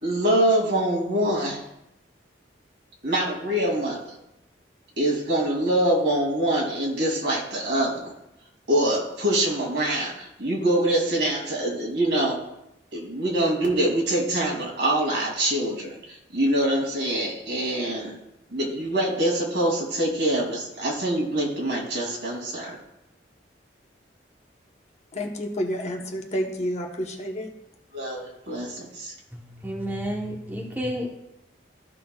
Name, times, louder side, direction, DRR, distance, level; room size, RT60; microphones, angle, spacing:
voice 1, 0.0-1.6 3.0-4.1 5.0-8.1 8.7-12.4 12.9-18.2 18.5-22.8 27.9-29.1, right 1 dB, 70° right, 2.5 m, -24 dB
voice 2, 25.1-27.5, equal, 40° left, 1.0 m, -29 dB
voice 3, 29.3-31.1, equal, 10° right, 1.0 m, -31 dB
14.0 x 5.9 x 2.3 m
head